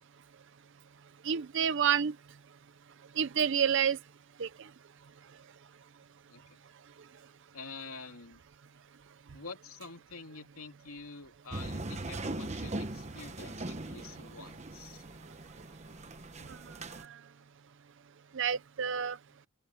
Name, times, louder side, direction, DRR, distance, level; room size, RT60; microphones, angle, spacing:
voice 1, 1.2-2.1 3.2-4.0 4.4-4.5 18.4-19.2, right 8 dB, 55° right, 0.5 m, -28 dB
voice 2, 7.5-8.4 9.3-15.0, left 4 dB, 80° left, 2.9 m, -47 dB
sound 1, 11.5-17.0, right 2 dB, 30° right, 1.2 m, -40 dB
open air
head